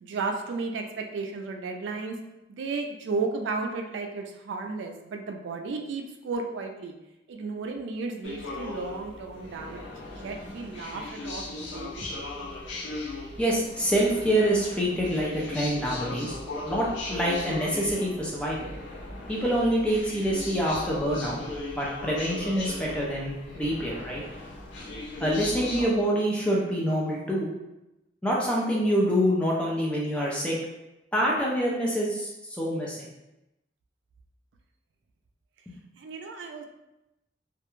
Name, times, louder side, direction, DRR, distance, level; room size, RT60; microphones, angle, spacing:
voice 1, 0.0-2.2 2.5-6.9 7.3-12.1 36.0-36.7, right 4 dB, 80° right, 3 dB, 0.3 m, -34 dB
sound 1, 8.2-25.9, left 2 dB, 85° left, 0.5 m, -38 dB
voice 2, 13.4-16.4 16.6-18.7 19.3-21.4 21.7-24.2 25.2-27.5 28.2-30.6 31.1-32.3 32.6-33.1 35.7-35.8, equal, 5° left, -4 dB, 0.4 m, -26 dB
2.3 x 2.1 x 3.0 m, 0.95 s
head